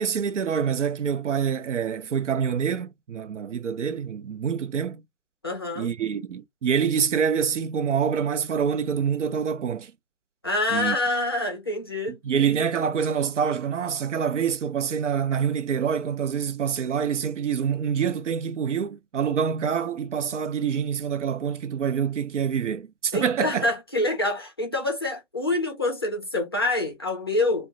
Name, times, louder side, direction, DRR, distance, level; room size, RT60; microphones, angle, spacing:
voice 1, 0.0-5.0 5.8-9.9 10.7-11.0 12.1-23.6, right 7 dB, 70° right, 0.5 m, -26 dB
voice 2, 5.4-5.9 10.4-12.2 23.1-27.7, left 2 dB, 20° left, 0.4 m, -26 dB
2.3 x 2.0 x 2.6 m
figure-of-eight pair, 140°, 37 cm